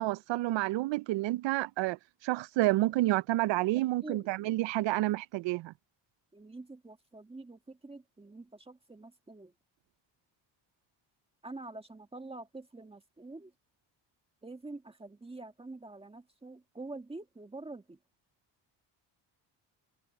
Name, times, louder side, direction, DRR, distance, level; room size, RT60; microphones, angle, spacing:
voice 1, 0.0-5.7, right 17 dB, 80° right, 0.5 m, -29 dB
voice 2, 6.3-9.5 11.4-13.5 14.4-18.0, right 2 dB, 15° right, 1.7 m, -46 dB
cardioid pair, 145°, 44 cm